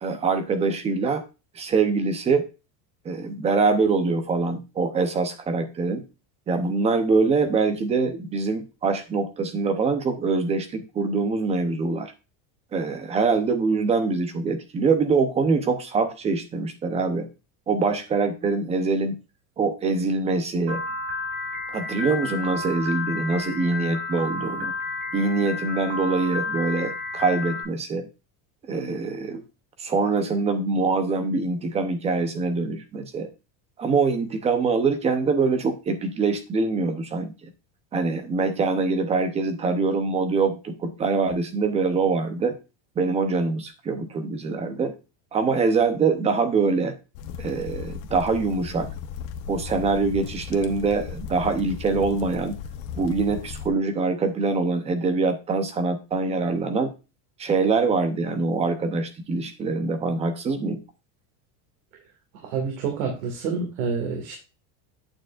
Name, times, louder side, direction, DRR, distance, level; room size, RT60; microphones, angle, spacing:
voice 1, 0.0-1.2 1.5-2.5 3.0-6.0 6.5-12.1 12.7-17.3 17.7-19.2 19.6-20.8 21.7-24.7 25.1-28.1 28.7-29.4 29.8-33.3 33.8-37.5 37.9-42.5 43.0-45.0 45.3-46.9 47.4-48.9 49.5-52.6 53.0-56.9 57.4-60.8, right 4 dB, 15° right, 8 dB, 0.7 m, -24 dB
Piano, 20.7-27.6, left 3 dB, 60° right, 4.8 m, -31 dB
sound 1, 47.1-53.7, left 7 dB, 70° left, 1.1 m, -36 dB
voice 2, 62.4-64.4, right 5 dB, 80° right, 2 dB, 2.3 m, -28 dB
8.8 x 7.0 x 2.4 m, 0.29 s
cardioid pair, 180°, 41 cm